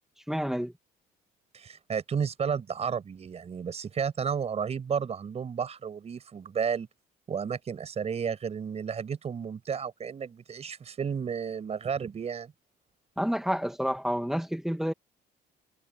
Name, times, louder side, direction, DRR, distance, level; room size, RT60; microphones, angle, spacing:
voice 1, 0.3-0.7 13.2-14.9, equal, ahead, 1.5 m, -29 dB
voice 2, 1.5-6.9 7.3-12.5, right 7 dB, 40° right, 5.2 m, -32 dB
cardioid pair, 110°, 17 cm